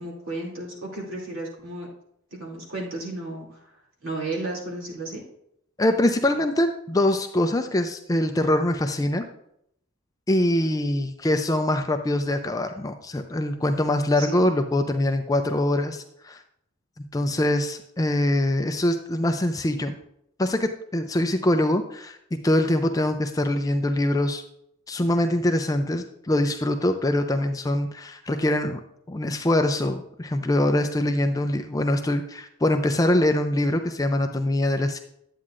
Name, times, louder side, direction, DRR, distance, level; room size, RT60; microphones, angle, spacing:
voice 1, 0.0-1.9 2.3-3.7 4.0-5.2 14.2-14.5, right 2 dB, 65° right, -3 dB, 2.6 m, -33 dB
voice 2, 5.8-9.3 10.3-16.4 17.1-19.9 20.4-24.4 24.9-28.8 29.1-35.0, left 1 dB, 15° left, 6 dB, 0.4 m, -23 dB
10.0 x 8.5 x 2.5 m, 0.75 s
head